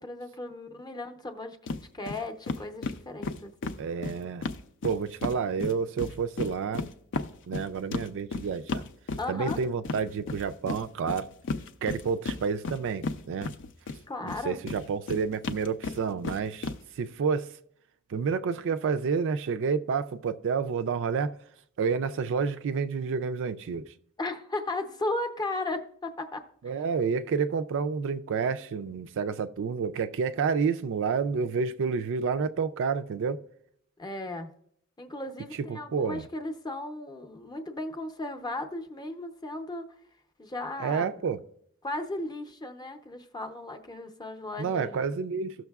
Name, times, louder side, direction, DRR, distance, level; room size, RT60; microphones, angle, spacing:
voice 1, 0.0-3.8 9.2-9.6 14.1-14.6 24.2-26.7 34.0-34.5 35.0-39.9 40.4-41.2 41.8-45.0, left 2 dB, 20° left, 0.6 m, -36 dB
sound 1, 1.7-1.8 2.1-2.2 2.5-5.4 5.6-14.0 14.3-16.8, left 3 dB, 60° left, 0.5 m, -34 dB
voice 2, 3.8-4.5 4.8-6.9 7.5-8.8 9.3-11.3 11.8-13.5 14.2-17.5 18.1-21.3 21.8-23.8 26.6-33.4 35.6-36.2 40.8-41.4 44.6-45.6, right 5 dB, 60° right, 0.4 m, -29 dB
15.5 x 6.3 x 2.3 m
head